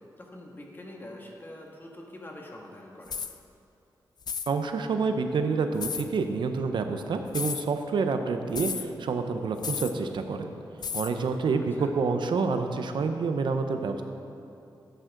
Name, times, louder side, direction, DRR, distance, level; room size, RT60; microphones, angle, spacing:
voice 1, 0.2-3.2 11.8-11.9, left 1 dB, 25° left, -1 dB, 1.9 m, -44 dB
sound 1, 3.1-3.4 4.2-4.5 5.8-6.1 7.3-7.7 8.6-8.9 9.6-10.0 10.8-11.1, left 6 dB, 60° left, 0.5 m, -33 dB
voice 2, 4.5-10.5 10.9-14.0, right 4 dB, 75° right, 7 dB, 0.8 m, -28 dB
13.5 x 9.2 x 3.9 m, 2.7 s
cardioid pair, 75°, 8 cm